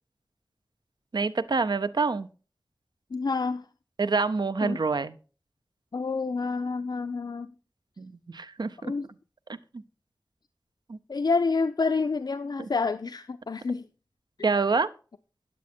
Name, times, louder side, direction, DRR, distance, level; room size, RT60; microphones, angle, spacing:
voice 1, 1.1-2.3 4.0-5.1 8.0-8.9 10.9-11.0 12.6-12.7 14.4-14.9, right 4 dB, 85° right, 12 dB, 0.5 m, -26 dB
voice 2, 3.1-3.7 4.6-4.8 5.9-7.5 8.8-9.1 11.1-13.9 14.4-14.6, left 4 dB, 75° left, 10 dB, 0.4 m, -28 dB
9.6 x 8.4 x 4.2 m, 0.36 s
wide cardioid pair, 50°, 7 cm